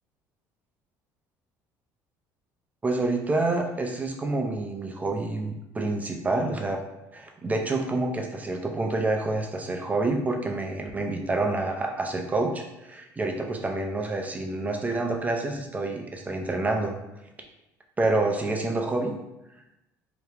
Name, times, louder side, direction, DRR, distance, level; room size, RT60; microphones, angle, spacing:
voice 1, 2.8-6.8 7.1-16.9 18.0-19.2, right 2 dB, 20° right, 2 dB, 0.5 m, -28 dB
2.9 x 2.3 x 3.3 m, 0.91 s
supercardioid pair, 90°, 8 cm